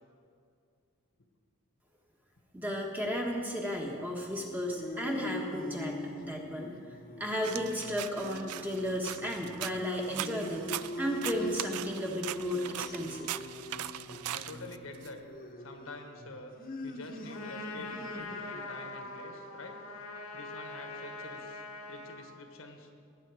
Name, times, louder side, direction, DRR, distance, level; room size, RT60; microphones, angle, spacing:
voice 1, 2.5-6.7 7.2-10.7 11.0-13.3, equal, 10° right, -1 dB, 1.2 m, -34 dB
sound 1, 4.3-18.8, left 1 dB, 40° left, 1.0 m, -43 dB
sound 2, 7.4-15.1, right 12 dB, 85° right, 0.4 m, -40 dB
voice 2, 14.3-15.2 15.6-16.6 16.8-19.8 20.3-21.6 21.9-22.9, left 2 dB, 70° left, 5 dB, 1.3 m, -47 dB
Trumpet, 17.3-22.3, left 3 dB, 85° left, 1.5 m, -43 dB
18.0 x 8.4 x 4.8 m, 2.3 s
head